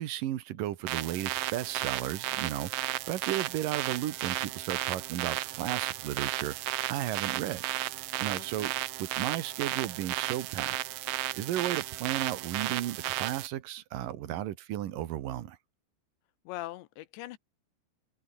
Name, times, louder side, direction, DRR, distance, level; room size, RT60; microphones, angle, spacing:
voice 1, 0.0-2.7 3.1-6.5 6.9-7.6 8.2-8.7 9.0-10.8 11.4-15.6, right 13 dB, 65° right, 2.5 m, -34 dB
sound 1, 0.9-13.5, right 16 dB, 85° right, 1.9 m, -34 dB
voice 2, 8.3-8.8 16.4-17.4, left 16 dB, 80° left, 3.3 m, -42 dB
open air
omnidirectional pair, 5.1 m